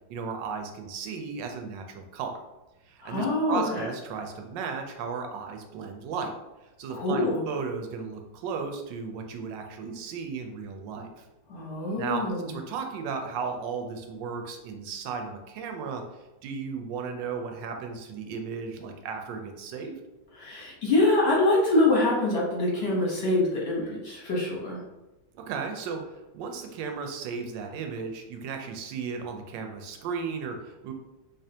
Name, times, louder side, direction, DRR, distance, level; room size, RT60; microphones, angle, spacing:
voice 1, 0.1-2.4 2.8-6.3 6.6-11.2 12.0-16.0 16.4-20.0 25.3-30.9, right 5 dB, 75° right, 4 dB, 1.2 m, -35 dB
voice 2, 3.0-3.9 6.9-7.5 11.5-12.5 20.3-24.8, left 2 dB, 40° left, -4 dB, 1.1 m, -25 dB
3.7 x 3.3 x 2.8 m, 0.99 s
omnidirectional pair, 2.1 m